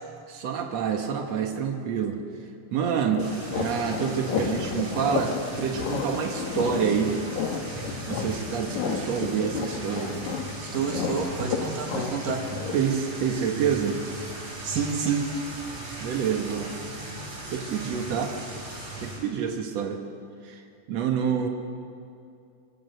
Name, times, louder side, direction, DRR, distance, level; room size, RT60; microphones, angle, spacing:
voice 1, 0.3-2.2 2.7-7.1 8.1-10.2 12.7-14.0 16.0-16.7 17.5-18.3 19.0-20.0 20.4-20.6 20.9-21.5, right 7 dB, 85° right, 3 dB, 1.4 m, -27 dB
sound 1, 3.1-12.8, left 6 dB, 70° left, 1.8 m, -32 dB
sound 2, 3.2-19.2, right 1 dB, 35° right, 5.7 m, -38 dB
voice 2, 10.6-12.5 14.6-15.3, right 6 dB, 60° right, 2 dB, 2.7 m, -28 dB
23.0 x 20.5 x 6.7 m, 2.5 s
omnidirectional pair, 5.1 m